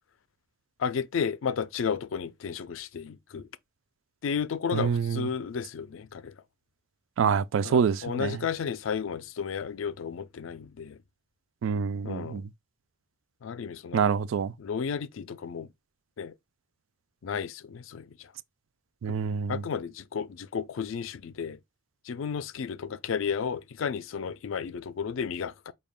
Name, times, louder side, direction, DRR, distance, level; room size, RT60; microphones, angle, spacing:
voice 1, 0.8-3.5 4.2-6.3 7.6-11.0 12.0-12.4 13.4-14.1 14.6-15.7 16.2-16.3 17.2-18.1 19.5-21.6 22.1-25.7, left 6 dB, 75° left, 0.4 m, -33 dB
voice 2, 4.7-5.3 7.2-8.4 11.6-12.5 13.9-14.5 19.0-19.6, right 6 dB, 70° right, 0.3 m, -26 dB
4.8 x 2.3 x 3.5 m
head